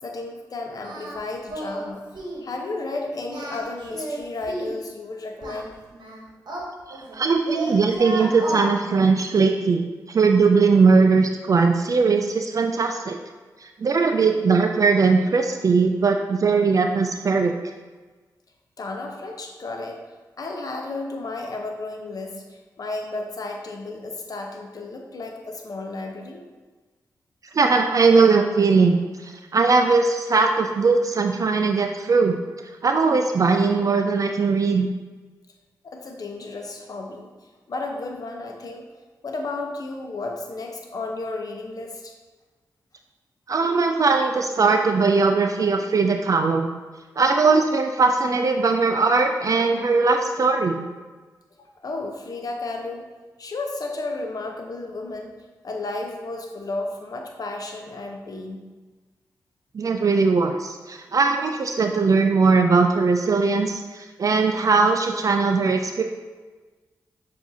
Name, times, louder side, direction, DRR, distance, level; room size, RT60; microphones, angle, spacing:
voice 1, 0.0-5.7 18.8-20.0 20.4-26.4 35.8-37.3 37.7-38.9 39.2-42.1 51.6-53.1 53.4-55.3 55.6-58.6, left 2 dB, 55° left, 2 dB, 0.8 m, -33 dB
Singing, 0.8-1.2 1.5-1.9 2.1-2.4 3.2-4.8 5.4-7.2 7.5-8.7, right 1 dB, 70° right, 1.0 m, -33 dB
voice 2, 6.9-13.2 13.6-17.6 27.5-32.3 32.8-34.9 43.5-46.7 47.2-50.8 59.7-66.0, right 4 dB, 50° right, 5 dB, 0.3 m, -20 dB
6.8 x 2.7 x 2.7 m, 1.3 s
cardioid pair, 50°, 7 cm